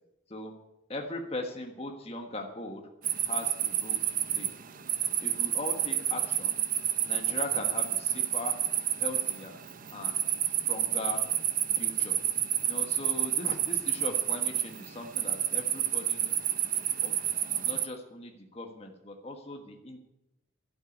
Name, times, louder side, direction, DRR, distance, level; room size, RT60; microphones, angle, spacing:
voice 1, 0.9-2.8 3.3-4.0 4.3-4.5 5.2-6.6 7.0-8.5 9.0-9.6 9.9-10.2 10.7-11.2 11.8-12.2 12.6-17.1 17.6-20.0, left 2 dB, 30° left, 2 dB, 1.5 m, -39 dB
sound 1, 3.0-17.9, right 11 dB, 40° right, 0.7 m, -29 dB
12.0 x 8.0 x 9.5 m, 0.88 s
head